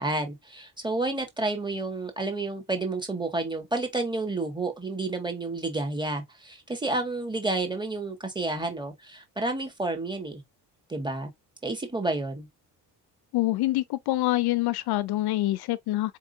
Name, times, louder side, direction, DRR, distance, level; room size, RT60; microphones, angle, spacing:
voice 1, 0.0-10.4 10.9-11.3 11.6-12.5, right 2 dB, 10° right, 1.8 m, -30 dB
voice 2, 13.3-16.2, left 17 dB, 70° left, 0.5 m, -26 dB
4.1 x 3.6 x 2.6 m
cardioid pair, 80°, 40 cm